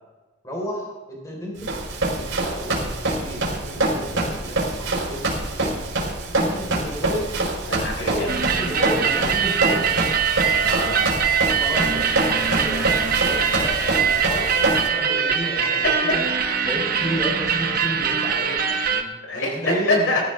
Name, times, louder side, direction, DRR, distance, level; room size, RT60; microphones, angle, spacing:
voice 1, 0.4-1.7 2.1-5.7 6.4-7.3 8.1-10.1 11.6-16.3 16.6-20.2, equal, 15° left, -3 dB, 3.8 m, -32 dB
Run, 1.6-14.9, right 2 dB, 65° right, 4.2 m, -25 dB
voice 2, 7.7-8.3 10.6-11.3 19.3-20.2, left 2 dB, 70° left, -1 dB, 3.9 m, -25 dB
sound 1, 8.3-19.0, right 7 dB, 45° right, 1.1 m, -22 dB
21.0 x 13.5 x 3.4 m, 1.2 s
head